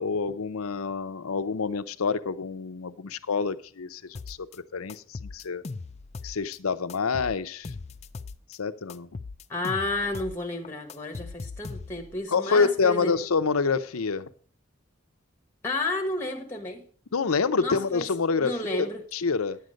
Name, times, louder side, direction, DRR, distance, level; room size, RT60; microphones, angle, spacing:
voice 1, 0.0-4.4 4.7-5.6 6.2-7.7 8.5-9.1 12.3-14.3 17.1-18.9 19.1-19.6, left 5 dB, 85° left, 11 dB, 0.7 m, -27 dB
sound 1, 4.1-4.6 4.9-6.6 6.9-8.6 8.9-10.4 10.6-12.2, left 4 dB, 30° left, 0.4 m, -39 dB
voice 2, 9.5-13.1 15.6-16.8 17.6-18.1 18.4-19.0, left 2 dB, 10° left, 4 dB, 1.4 m, -31 dB
10.5 x 7.8 x 5.1 m, 0.43 s
head